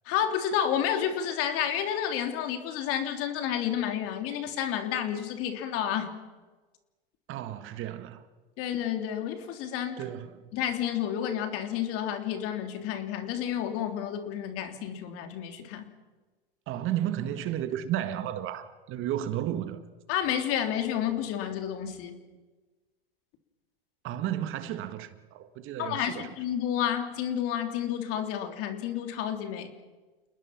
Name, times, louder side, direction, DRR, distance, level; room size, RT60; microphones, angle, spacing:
voice 1, 0.0-6.1 8.6-10.0 10.5-15.9 20.1-22.2 25.8-29.7, left 9 dB, 50° left, 3.3 m, -30 dB
voice 2, 7.3-8.2 10.0-10.5 16.7-19.8 24.0-26.3, right 11 dB, 40° right, 1.7 m, -33 dB
29.0 x 20.0 x 6.0 m
hypercardioid pair, 105°, 30 cm